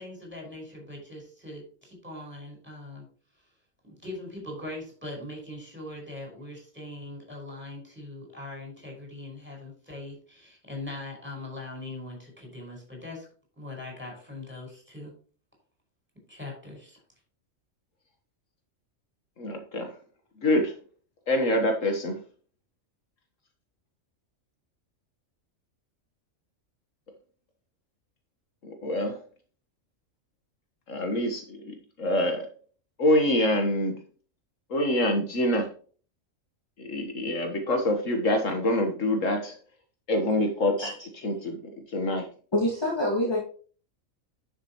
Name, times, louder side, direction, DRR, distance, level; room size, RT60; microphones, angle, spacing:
voice 1, 0.0-3.0 3.8-13.3 13.6-15.1 16.3-17.0, left 2 dB, 10° right, 0 dB, 5.4 m, -41 dB
voice 2, 19.4-19.9 20.4-20.7 21.3-22.2 28.6-29.2 30.9-32.5 33.0-33.9 34.7-35.7 36.8-39.5 40.1-40.9 41.2-41.6 41.9-42.3, left 1 dB, 70° left, 4 dB, 1.8 m, -25 dB
voice 3, 42.5-43.4, left 1 dB, 20° left, -3 dB, 2.3 m, -26 dB
11.0 x 6.8 x 3.1 m, 0.41 s
omnidirectional pair, 1.4 m